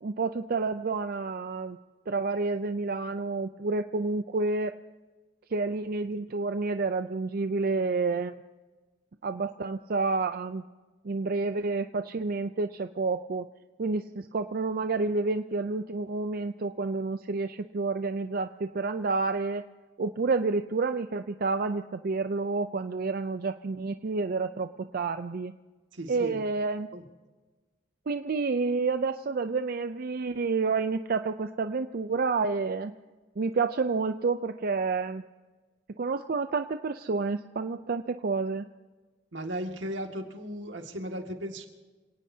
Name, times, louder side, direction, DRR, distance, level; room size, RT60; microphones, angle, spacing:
voice 1, 0.0-1.8 2.1-4.7 5.5-8.3 9.2-10.6 11.0-13.5 13.8-19.6 20.0-25.5 26.1-26.9 28.1-32.9 33.4-35.2 36.0-38.6, right 4 dB, 55° right, 9 dB, 0.5 m, -29 dB
voice 2, 25.9-26.4 26.9-27.0 39.3-41.7, equal, 80° right, 3 dB, 2.1 m, -36 dB
26.5 x 17.5 x 2.8 m, 1.3 s
head